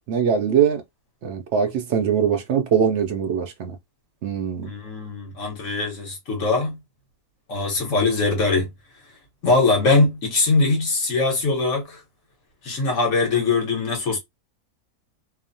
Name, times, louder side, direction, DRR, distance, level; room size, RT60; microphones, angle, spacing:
voice 1, 0.1-0.8 1.2-3.7 4.2-4.7, right 7 dB, 70° right, 0.7 m, -22 dB
voice 2, 4.6-6.8 7.5-8.7 9.4-12.0 12.6-14.2, left 3 dB, 55° left, 1.3 m, -21 dB
2.9 x 2.1 x 2.6 m
omnidirectional pair, 1.6 m